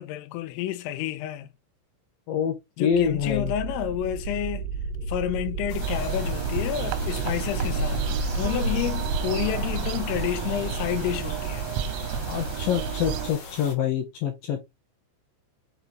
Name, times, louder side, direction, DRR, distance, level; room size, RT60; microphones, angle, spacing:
voice 1, 0.0-1.5 2.8-4.7 5.1-11.7, left 12 dB, 90° left, 3.5 m, -30 dB
voice 2, 2.3-3.5 12.3-14.6, left 8 dB, 70° left, 2.2 m, -26 dB
sound 1, 2.9-13.5, right 3 dB, 50° right, 2.2 m, -32 dB
sound 2, 5.7-13.7, left 4 dB, 55° left, 2.5 m, -41 dB
sound 3, 5.8-13.3, right 7 dB, 85° right, 3.1 m, -32 dB
7.5 x 4.6 x 3.4 m
omnidirectional pair, 5.7 m